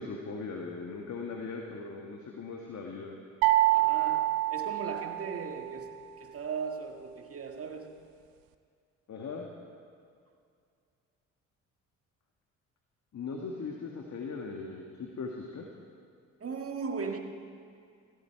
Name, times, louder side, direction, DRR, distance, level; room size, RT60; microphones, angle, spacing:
voice 1, 0.0-3.2 9.1-9.5 13.1-15.6, left 4 dB, 50° left, 1 dB, 1.9 m, -39 dB
sound 1, 3.4-5.6, right 17 dB, 80° right, 0.8 m, -26 dB
voice 2, 3.7-8.0 16.4-17.2, right 5 dB, 40° right, 4 dB, 1.8 m, -38 dB
17.5 x 16.0 x 4.6 m, 2.3 s
hypercardioid pair, 60°, 35 cm